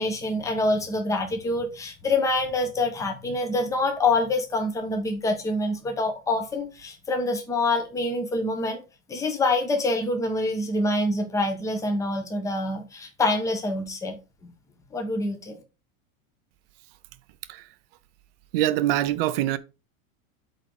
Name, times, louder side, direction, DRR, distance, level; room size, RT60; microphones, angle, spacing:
voice 1, 0.0-8.8 9.1-14.2 14.9-15.6, left 2 dB, 5° left, 1.1 m, -26 dB
voice 2, 18.5-19.6, right 14 dB, 45° right, 0.7 m, -24 dB
8.2 x 3.8 x 5.5 m
supercardioid pair, 175°, 42 cm